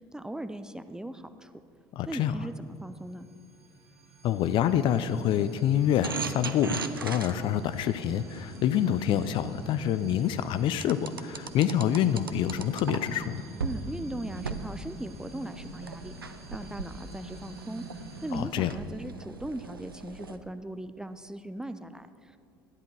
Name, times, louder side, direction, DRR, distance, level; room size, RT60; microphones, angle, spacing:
voice 1, 0.1-1.5 2.1-3.3 13.6-16.1 16.5-22.4, right 1 dB, 5° right, 11 dB, 0.5 m, -38 dB
voice 2, 2.0-2.4 4.2-13.4 18.3-18.7, left 10 dB, 45° left, 13 dB, 0.5 m, -27 dB
sound 1, 2.7-18.4, right 2 dB, 55° right, 1.6 m, -47 dB
sound 2, 6.0-9.9 10.8-13.3 13.6-13.8 14.3-20.4, right 5 dB, 85° right, 0.5 m, -39 dB
12.5 x 10.0 x 4.6 m, 2.3 s
figure-of-eight pair, 60°, 11 cm